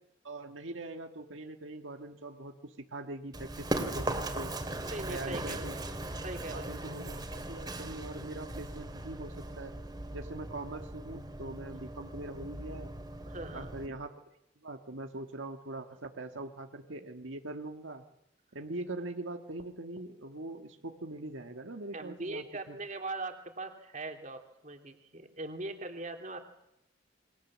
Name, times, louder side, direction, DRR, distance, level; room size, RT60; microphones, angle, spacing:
voice 1, 0.2-4.5 5.1-5.7 6.5-9.7 10.1-12.9 13.5-14.1 14.6-18.0 18.5-22.8, right 2 dB, 80° right, 5 dB, 1.7 m, -42 dB
Run, 3.3-13.9, right 1 dB, 20° right, 2.7 m, -39 dB
voice 2, 4.9-5.7 6.2-6.7 13.3-13.7 21.9-26.4, right 2 dB, 40° right, 4 dB, 2.9 m, -40 dB
28.5 x 23.0 x 7.4 m, 0.81 s
head